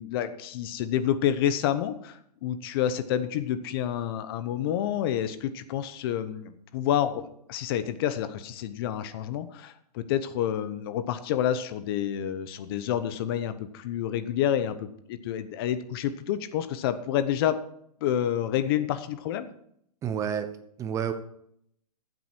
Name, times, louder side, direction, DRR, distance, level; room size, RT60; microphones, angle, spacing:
voice 1, 0.0-7.2 7.5-17.6 18.0-19.5, left 10 dB, 35° left, 12 dB, 0.9 m, -28 dB
voice 2, 20.0-20.5 20.8-21.1, right 8 dB, 15° right, 9 dB, 0.9 m, -29 dB
14.5 x 8.1 x 4.5 m, 0.71 s
hypercardioid pair, 150°, 21 cm